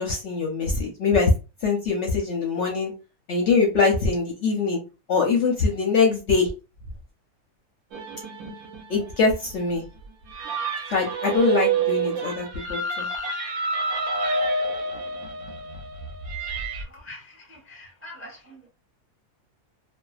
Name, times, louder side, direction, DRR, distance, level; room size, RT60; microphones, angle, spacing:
voice 1, 0.0-1.3 1.6-2.9 3.3-4.8 5.1-6.5 8.9-9.8 10.9-13.1, left 4 dB, 65° left, 0.7 m, -23 dB
sound 1, 7.9-16.8, right 4 dB, 70° right, 1.0 m, -29 dB
voice 2, 16.7-18.7, left 1 dB, 15° right, 0.4 m, -44 dB
2.6 x 2.1 x 2.3 m
omnidirectional pair, 1.6 m